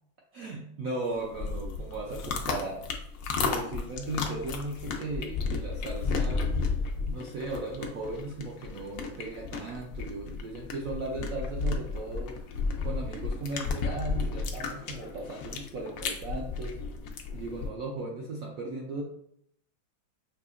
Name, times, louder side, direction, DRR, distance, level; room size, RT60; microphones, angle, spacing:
voice 1, 0.3-2.9 3.4-6.5 7.1-12.4 12.8-16.8 17.3-19.0, right 2 dB, 90° right, -1 dB, 0.7 m, -37 dB
sound 1, 1.1-17.7, left 4 dB, 85° left, 0.7 m, -33 dB
5.9 x 2.7 x 2.4 m, 0.72 s
omnidirectional pair, 2.1 m